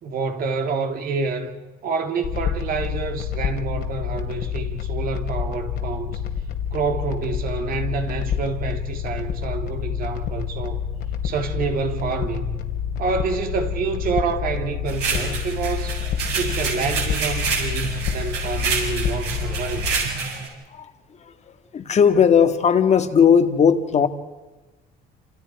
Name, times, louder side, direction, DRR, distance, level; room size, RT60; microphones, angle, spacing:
voice 1, 0.0-6.2 6.7-10.8 11.2-12.6 13.0-16.0 16.3-19.8, right 4 dB, 60° right, 2.7 m, -27 dB
sound 1, 2.2-20.0, left 8 dB, 70° left, 2.5 m, -28 dB
sound 2, 14.9-20.5, right 5 dB, 80° right, 7.1 m, -27 dB
voice 2, 21.2-24.1, left 7 dB, 40° left, 1.6 m, -17 dB
28.5 x 27.5 x 4.8 m
cardioid pair, 110°, 17 cm